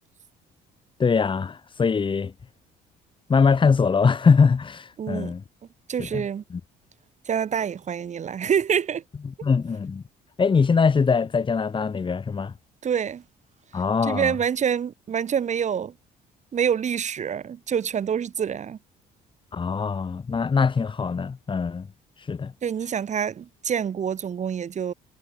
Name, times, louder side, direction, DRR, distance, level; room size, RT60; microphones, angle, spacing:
voice 1, 1.0-2.3 3.3-5.4 6.0-6.2 6.5-6.6 9.2-10.0 10.4-12.5 13.7-14.3 19.5-21.9 22.3-22.5, left 5 dB, 30° left, 4.4 m, -22 dB
voice 2, 5.0-5.3 5.9-6.4 7.3-9.0 12.8-13.2 14.0-15.9 16.5-18.8 22.6-24.9, right 8 dB, 45° right, 7.5 m, -26 dB
cardioid pair, 110°, 17 cm